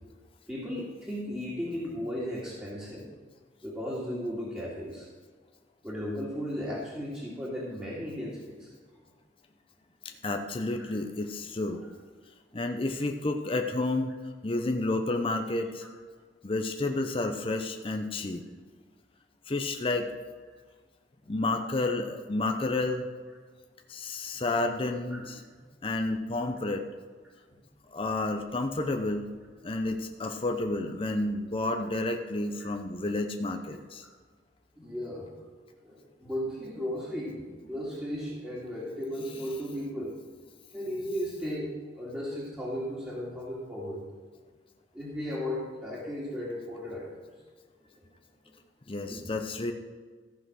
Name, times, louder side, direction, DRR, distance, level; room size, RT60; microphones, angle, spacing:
voice 1, 0.5-3.0 3.6-5.1 5.8-8.7 10.8-10.9 11.7-11.9 15.8-15.9 21.2-21.3 25.1-25.2 25.5-25.6 27.5-27.6 32.6-32.7 34.0-34.1 34.8-35.3 35.8-40.2 40.7-44.0 44.9-47.2 49.0-49.3, equal, 10° right, -8 dB, 2.3 m, -36 dB
voice 2, 10.2-11.8 12.5-14.1 14.4-15.9 16.4-18.4 19.5-20.2 21.3-23.1 23.9-25.4 25.8-26.8 27.9-29.3 29.6-34.1 48.9-49.7, left 2 dB, 30° left, 4 dB, 0.7 m, -30 dB
14.0 x 5.7 x 6.2 m, 1.5 s
head